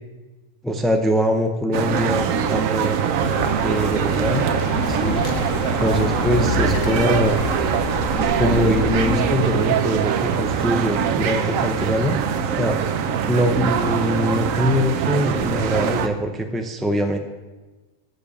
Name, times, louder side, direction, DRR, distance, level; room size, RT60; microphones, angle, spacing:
voice 1, 0.6-3.0 3.6-4.4 4.9-5.3 5.8-7.4 8.4-12.2 12.6-12.8 13.3-17.2, equal, ahead, 4 dB, 0.3 m, -22 dB
sound 1, 1.7-16.1, right 7 dB, 85° right, 1.1 m, -22 dB
Bird, 3.2-9.4, left 5 dB, 75° left, 1.5 m, -28 dB
10.5 x 6.8 x 7.2 m, 1.2 s
omnidirectional pair, 1.3 m